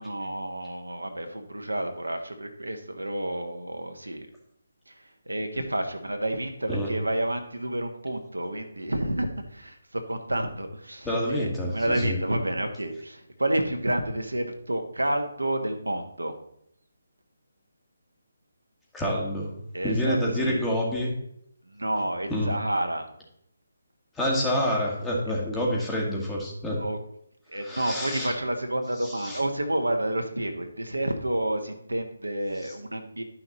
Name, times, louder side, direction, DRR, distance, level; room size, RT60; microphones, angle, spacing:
voice 1, 0.0-4.3 4.9-16.3 19.7-20.6 21.6-23.1 26.8-27.0 27.5-33.2, right 1 dB, 85° right, 4 dB, 1.4 m, -30 dB
voice 2, 11.1-12.2 18.9-21.1 22.3-22.5 24.2-26.8 27.6-28.3 29.2-29.4, equal, 10° left, -2 dB, 1.9 m, -27 dB
11.0 x 5.9 x 4.0 m, 0.72 s
figure-of-eight pair, 150°, 0 cm